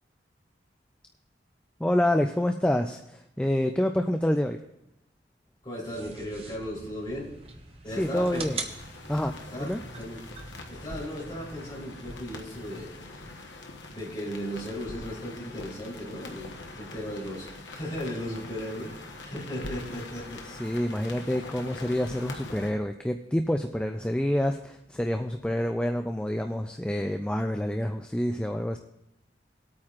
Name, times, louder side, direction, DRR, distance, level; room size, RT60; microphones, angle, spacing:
voice 1, 1.8-4.6 8.0-8.6 9.1-9.8 20.5-28.8, left 1 dB, 5° left, 5 dB, 0.3 m, -27 dB
voice 2, 5.6-7.3 7.8-8.4 9.5-9.7 10.0-10.2 10.7-13.3 13.9-18.9 19.2-20.4, equal, 25° left, -6 dB, 3.5 m, -36 dB
sound 1, 5.8-12.9, right 3 dB, 35° right, 0.9 m, -43 dB
sound 2, 7.9-22.7, left 2 dB, 80° left, 1.1 m, -43 dB
19.0 x 8.7 x 2.4 m, 0.85 s
head